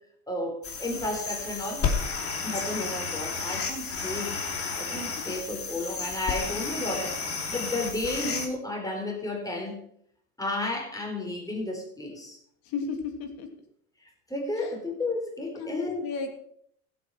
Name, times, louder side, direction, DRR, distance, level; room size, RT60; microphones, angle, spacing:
voice 1, 0.3-1.8 2.4-4.4 4.8-7.2 7.5-9.8 10.4-12.4 14.3-16.0, left 2 dB, 10° left, 1 dB, 4.4 m, -32 dB
sound 1, 0.6-8.5, left 5 dB, 30° left, 2.8 m, -32 dB
voice 2, 12.6-13.5 14.6-14.7 15.5-16.3, left 5 dB, 50° left, 6 dB, 2.9 m, -34 dB
15.5 x 8.3 x 5.9 m, 0.68 s
hypercardioid pair, 90°, 44 cm